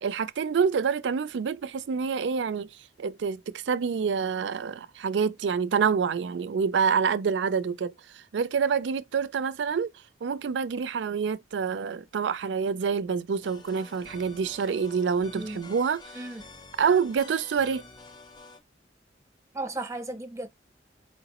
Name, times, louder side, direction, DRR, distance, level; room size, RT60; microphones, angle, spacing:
voice 1, 0.0-2.7 3.0-9.9 10.2-16.0 16.8-17.8, right 6 dB, 80° right, 0.4 m, -27 dB
sound 1, 13.4-18.6, left 3 dB, 25° left, 0.6 m, -48 dB
voice 2, 19.5-20.5, right 2 dB, 15° right, 0.8 m, -35 dB
4.4 x 2.9 x 2.9 m
head